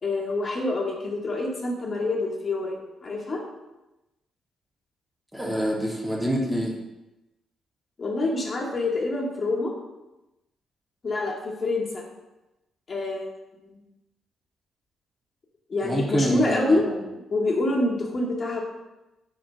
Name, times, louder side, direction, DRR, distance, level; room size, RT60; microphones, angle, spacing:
voice 1, 0.0-3.4 8.0-9.7 11.0-12.0 12.9-13.3 13.6-13.8 15.7-16.8 17.3-18.6, left 2 dB, 45° left, -2 dB, 0.9 m, -26 dB
voice 2, 5.3-6.8 15.8-17.0, equal, 5° right, -1 dB, 0.8 m, -26 dB
3.8 x 2.2 x 4.4 m, 1.0 s
hypercardioid pair, 50°, 0 cm